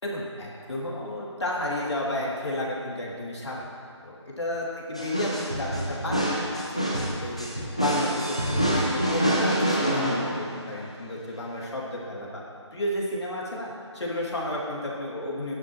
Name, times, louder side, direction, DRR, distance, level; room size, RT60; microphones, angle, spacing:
voice 1, 0.0-3.6 4.0-6.2 6.5-7.5 7.8-12.4 12.7-15.5, left 1 dB, 65° left, -4 dB, 3.1 m, -32 dB
sound 1, 5.0-10.8, equal, 10° left, 0.5 m, -26 dB
14.5 x 11.0 x 3.2 m, 2.3 s
figure-of-eight pair, 175°, 15 cm